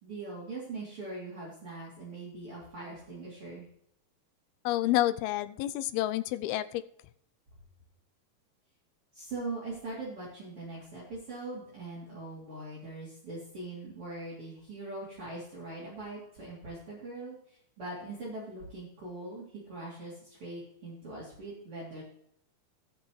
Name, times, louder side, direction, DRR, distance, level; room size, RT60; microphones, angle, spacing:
voice 1, 0.0-3.7 9.1-22.0, right 2 dB, 35° right, -7 dB, 3.9 m, -41 dB
voice 2, 4.7-6.8, left 14 dB, 85° left, 13 dB, 2.5 m, -29 dB
19.0 x 6.3 x 3.2 m, 0.72 s
omnidirectional pair, 4.4 m